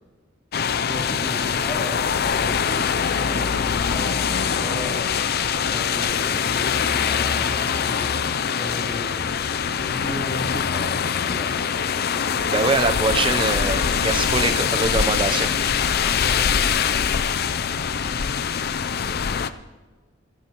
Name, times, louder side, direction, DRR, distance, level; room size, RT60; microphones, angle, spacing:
sound 1, 0.5-19.5, left 7 dB, 50° left, 0.5 m, -23 dB
voice 1, 0.8-5.0 5.4-8.2 8.5-11.5 15.9-16.6, left 1 dB, 10° left, -4 dB, 3.1 m, -35 dB
voice 2, 12.5-15.5, right 3 dB, 25° right, 8 dB, 0.7 m, -23 dB
24.0 x 12.0 x 3.0 m, 1.3 s
head